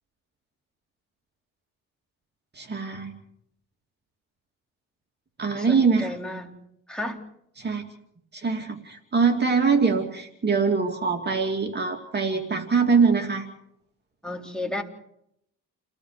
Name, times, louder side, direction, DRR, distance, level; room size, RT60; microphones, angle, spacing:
voice 1, 2.5-3.1 5.4-6.1 7.6-7.8 8.3-13.5, right 5 dB, 35° right, 3 dB, 2.7 m, -23 dB
voice 2, 5.5-6.6 6.9-7.2 14.2-14.8, left 1 dB, 5° left, 0 dB, 4.3 m, -33 dB
30.0 x 17.5 x 5.0 m, 0.73 s
cardioid pair, 90°, 30 cm